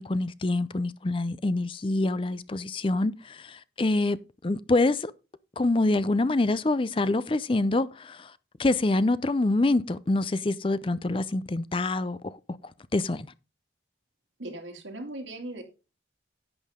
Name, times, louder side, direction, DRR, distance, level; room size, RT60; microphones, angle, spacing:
voice 1, 0.0-4.2 4.4-5.1 5.6-8.3 8.6-12.4 12.9-13.3, left 2 dB, 25° left, 0.5 m, -26 dB
voice 2, 14.4-15.6, right 1 dB, 85° right, 2.6 m, -38 dB
11.0 x 8.4 x 3.6 m
head